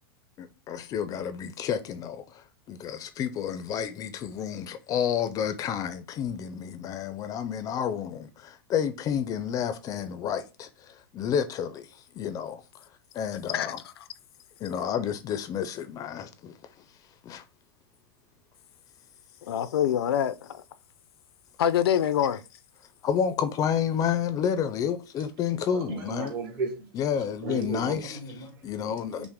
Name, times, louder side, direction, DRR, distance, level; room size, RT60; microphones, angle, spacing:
voice 1, 0.4-11.9 12.1-12.6 13.1-13.8 14.6-16.6 17.2-17.4 23.0-26.3 26.9-28.2 28.6-29.3, left 8 dB, 30° left, 0.4 m, -30 dB
voice 2, 19.5-20.6 21.6-22.4, left 10 dB, 85° left, 0.4 m, -25 dB
voice 3, 25.7-26.9 27.4-29.3, right 4 dB, 65° right, 1.9 m, -35 dB
5.8 x 2.1 x 3.5 m
hypercardioid pair, 135°, 13 cm